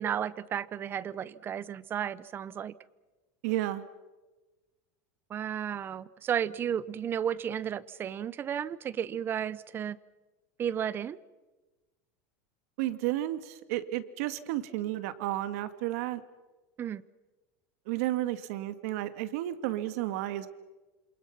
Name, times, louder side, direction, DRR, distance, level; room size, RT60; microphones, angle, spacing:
voice 1, 0.0-2.7 5.3-10.0 10.6-11.2 16.8-17.0, right 9 dB, 25° right, 19 dB, 0.7 m, -33 dB
voice 2, 3.4-3.8 12.8-16.2 17.9-20.5, right 15 dB, 70° right, 11 dB, 1.8 m, -32 dB
27.5 x 27.0 x 5.9 m, 1.2 s
supercardioid pair, 145°, 9 cm